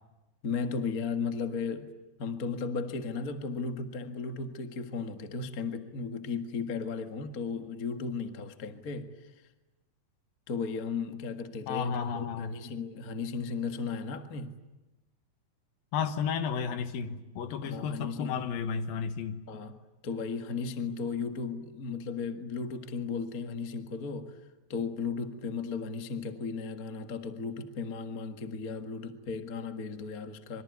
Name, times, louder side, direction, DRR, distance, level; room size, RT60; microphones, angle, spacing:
voice 1, 0.4-1.9 2.2-9.1 10.5-14.5 17.6-18.3 19.5-19.8 20.0-24.4 24.7-30.6, left 5 dB, 55° left, 1.0 m, -35 dB
voice 2, 11.7-12.6 15.9-19.4, left 7 dB, 70° left, 2.9 m, -32 dB
26.0 x 24.0 x 9.5 m
omnidirectional pair, 4.5 m